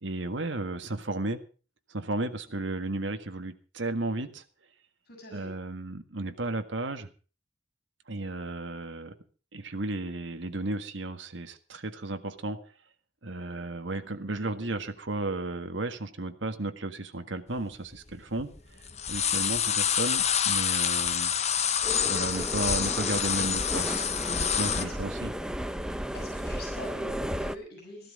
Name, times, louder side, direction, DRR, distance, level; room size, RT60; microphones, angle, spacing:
voice 1, 0.0-1.4 1.9-4.4 5.3-7.1 8.1-9.1 9.5-12.6 13.2-18.5 19.1-21.3 22.0-25.3, right 2 dB, 70° right, 8 dB, 1.7 m, -34 dB
voice 2, 5.1-5.5 24.8-24.9 26.1-28.1, left 1 dB, 60° left, 3 dB, 6.5 m, -45 dB
sound 1, 17.6-17.7 17.9-18.6 18.8-24.8, left 8 dB, 35° left, 1.0 m, -27 dB
sound 2, 21.8-27.6, equal, 5° right, 0.8 m, -34 dB
15.5 x 12.5 x 5.1 m, 0.38 s
head